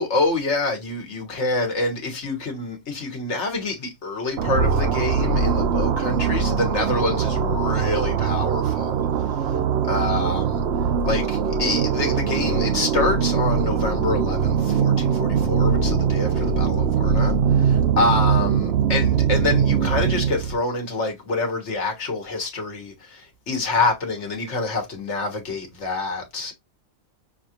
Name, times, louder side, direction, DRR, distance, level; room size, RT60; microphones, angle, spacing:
voice 1, 0.0-9.6 9.8-10.6 11.0-26.5, left 3 dB, 55° left, 1.5 m, -27 dB
sound 1, 4.4-20.6, right 7 dB, 60° right, 0.7 m, -21 dB
5.9 x 2.5 x 2.9 m
omnidirectional pair, 1.4 m